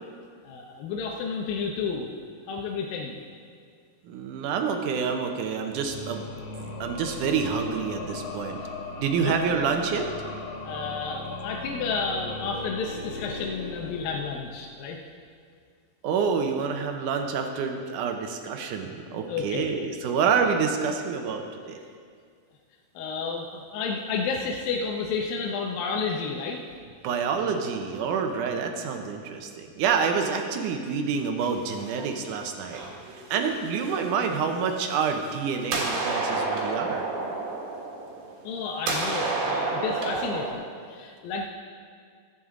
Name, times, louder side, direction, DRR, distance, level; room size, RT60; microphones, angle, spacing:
voice 1, 0.4-2.1 2.5-3.2 9.2-9.4 10.6-15.0 19.3-19.7 23.0-26.6 38.4-41.5, left 5 dB, 80° left, 0 dB, 2.5 m, -31 dB
voice 2, 4.1-6.4 6.8-8.6 9.0-10.1 16.0-21.8 27.0-32.8 33.3-37.1, right 6 dB, 75° right, 4 dB, 2.1 m, -27 dB
sound 1, 5.7-14.8, left 3 dB, 65° left, 2.7 m, -38 dB
sound 2, 31.4-32.3 32.7-34.2 34.9-35.3 35.6-38.6 38.9-40.5, right 3 dB, 55° right, 2.7 m, -30 dB
22.0 x 7.3 x 3.7 m, 2.1 s
omnidirectional pair, 4.1 m